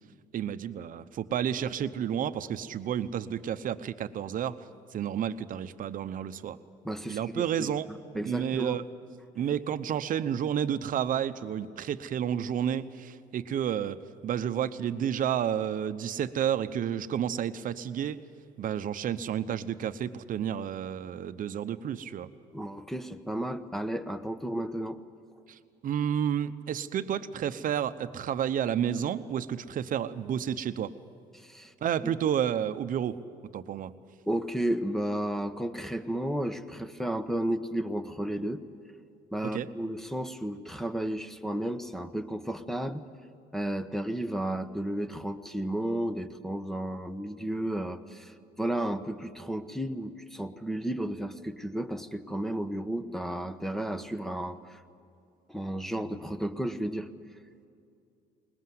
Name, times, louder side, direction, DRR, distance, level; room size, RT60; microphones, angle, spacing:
voice 1, 0.3-4.6 4.9-6.6 7.1-7.9 8.2-8.8 9.3-18.2 18.6-22.3 25.5-30.9 31.8-33.2 33.5-33.9 39.4-39.7, right 9 dB, 55° right, 12 dB, 0.9 m, -31 dB
voice 2, 6.8-8.8 22.5-25.0 31.3-31.7 34.3-38.6 39.3-43.1 43.5-54.8 55.5-57.1, right 1 dB, ahead, 10 dB, 1.1 m, -33 dB
21.0 x 20.0 x 7.9 m, 2.6 s
cardioid pair, 110°, 17 cm